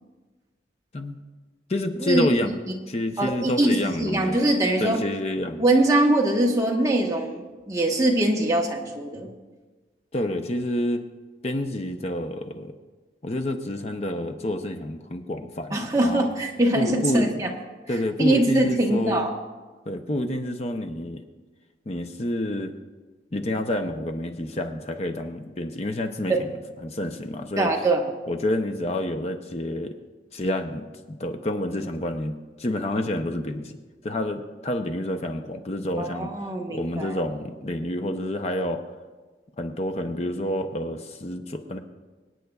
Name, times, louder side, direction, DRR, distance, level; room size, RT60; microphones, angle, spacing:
voice 1, 1.7-2.5 2.9-4.4 4.8-5.6 10.1-11.0 11.4-12.7 13.2-15.7 16.0-16.3 16.7-17.3 17.9-19.3 19.9-21.2 21.9-22.7 23.3-26.3 26.8-27.7 28.3-30.0 30.3-33.8 34.0-36.3 36.7-38.8 39.6-41.8, left 1 dB, 35° left, 6 dB, 0.6 m, -28 dB
voice 2, 3.2-5.0 5.6-9.3 15.7-17.5 18.2-19.3 26.3-26.4 27.6-28.1 36.0-37.2, right 1 dB, 20° right, 0 dB, 1.1 m, -22 dB
25.5 x 9.2 x 2.3 m, 1.3 s
head